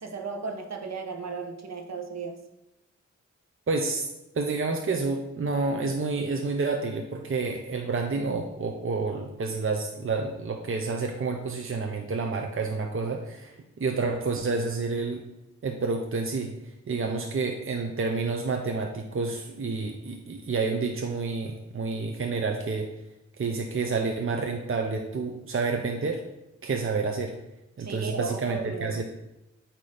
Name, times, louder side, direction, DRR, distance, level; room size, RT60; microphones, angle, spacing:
voice 1, 0.0-2.4 27.8-29.0, right 4 dB, 60° right, 4 dB, 1.1 m, -35 dB
voice 2, 3.7-4.1 4.3-15.2 15.6-16.5 16.9-22.9 23.4-26.2 26.6-27.3 27.8-29.0, right 4 dB, 45° right, 3 dB, 0.8 m, -29 dB
8.4 x 3.0 x 5.1 m, 0.90 s
cardioid pair, 45°, 30 cm